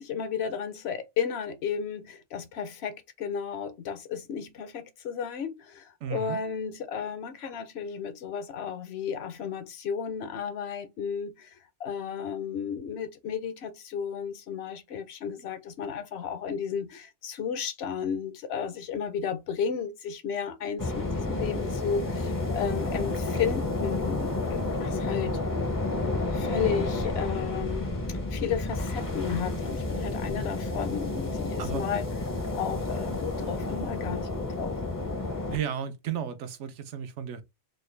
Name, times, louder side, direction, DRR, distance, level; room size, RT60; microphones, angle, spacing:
voice 1, 0.0-25.4 26.3-28.0 28.3-32.1 32.5-34.8, left 7 dB, 70° left, 0.9 m, -33 dB
voice 2, 6.0-6.4 31.6-31.8 35.5-37.4, right 8 dB, 85° right, 0.9 m, -33 dB
sound 1, 20.8-35.6, left 2 dB, 25° left, 0.4 m, -30 dB
3.8 x 2.2 x 3.2 m
omnidirectional pair, 1.2 m